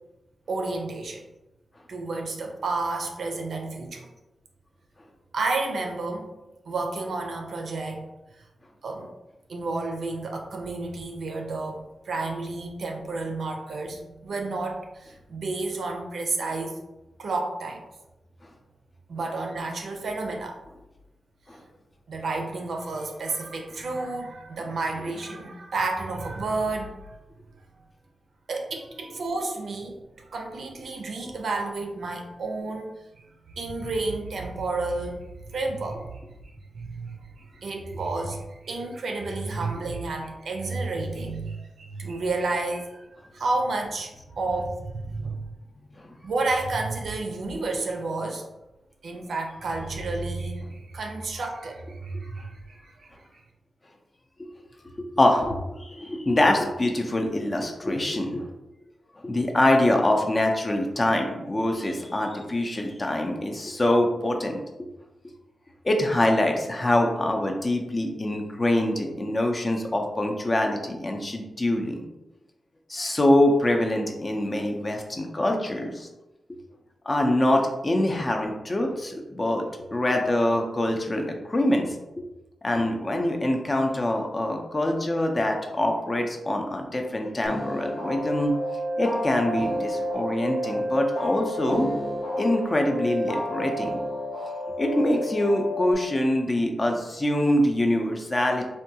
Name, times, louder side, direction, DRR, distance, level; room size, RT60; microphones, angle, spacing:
voice 1, 0.5-1.3 1.9-4.1 5.3-6.3 6.7-8.1 8.8-9.1 9.5-16.8 17.2-17.8 19.1-20.6 22.1-27.2 28.5-35.2 35.5-36.2 36.7-43.0 43.3-45.3 46.2-48.5 49.0-53.1, right 3 dB, 70° right, 2 dB, 0.5 m, -31 dB
voice 2, 55.2-58.5 59.2-64.6 65.8-72.0 72.9-76.1 77.0-79.6 79.9-81.9 82.2-82.3 82.6-88.5 89.0-91.9 92.4-94.0 94.8-98.7, left 1 dB, 25° left, 3 dB, 0.4 m, -24 dB
sound 1, 87.4-95.9, equal, 90° left, 0.7 m, -30 dB
3.4 x 2.2 x 2.7 m, 0.98 s
wide cardioid pair, 125°, 0 cm